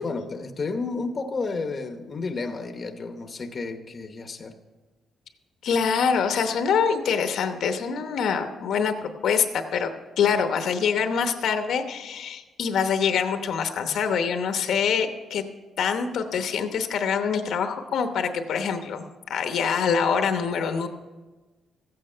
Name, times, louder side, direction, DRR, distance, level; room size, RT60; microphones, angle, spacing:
voice 1, 0.0-4.5, left 3 dB, 30° left, 6 dB, 0.9 m, -31 dB
voice 2, 5.6-9.9 10.2-15.4 15.8-19.0 19.3-20.9, left 6 dB, 70° left, 7 dB, 0.9 m, -25 dB
14.5 x 8.7 x 5.6 m, 1.3 s
cardioid pair, 130°, 0 cm